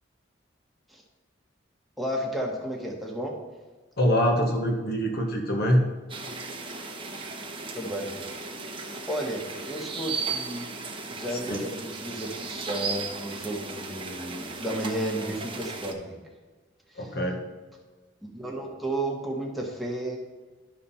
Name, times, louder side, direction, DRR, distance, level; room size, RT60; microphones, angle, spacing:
voice 1, 2.0-3.3 7.7-8.6 9.1-10.7 11.1-16.2 16.9-17.1 18.2-20.2, right 1 dB, ahead, -1 dB, 1.3 m, -33 dB
voice 2, 4.0-5.8 11.5-11.6 16.9-17.4, equal, 55° left, 3 dB, 1.2 m, -24 dB
sound 1, 6.1-15.9, right 4 dB, 30° right, 0.9 m, -36 dB
12.0 x 4.2 x 5.6 m, 1.3 s
head